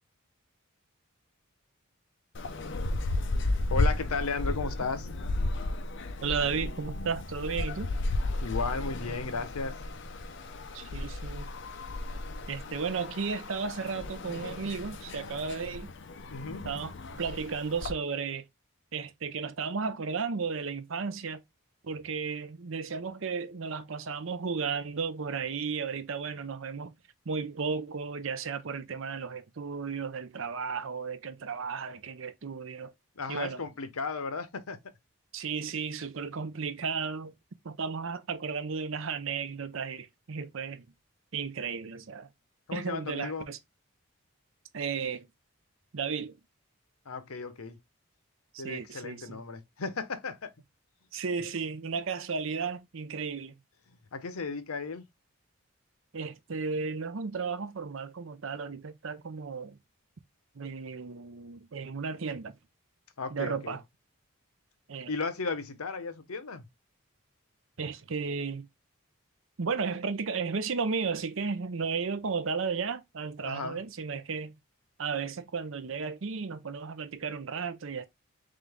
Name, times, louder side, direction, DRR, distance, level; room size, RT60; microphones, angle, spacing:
sound 1, 2.3-17.9, left 2 dB, 55° left, 0.6 m, -34 dB
voice 1, 3.7-5.1 8.4-9.8 16.3-16.6 33.2-34.8 42.7-43.5 47.1-47.8 48.6-50.5 54.1-55.0 63.2-63.8 65.1-66.7 73.4-73.8, left 4 dB, 85° left, 0.8 m, -35 dB
voice 2, 6.2-7.9 10.7-11.5 12.5-15.9 16.6-18.5 18.9-21.4 21.8-26.9 27.3-32.9 33.3-33.6 35.3-37.3 37.6-40.9 41.3-42.3 42.7-43.6 44.7-45.3 45.9-46.4 48.5-49.4 51.1-53.6 56.1-59.8 60.5-62.5 63.3-63.8 64.9-65.1 67.8-68.7 69.6-74.6 75.0-78.1, right 5 dB, 65° right, 0.6 m, -34 dB
3.8 x 3.4 x 3.4 m
head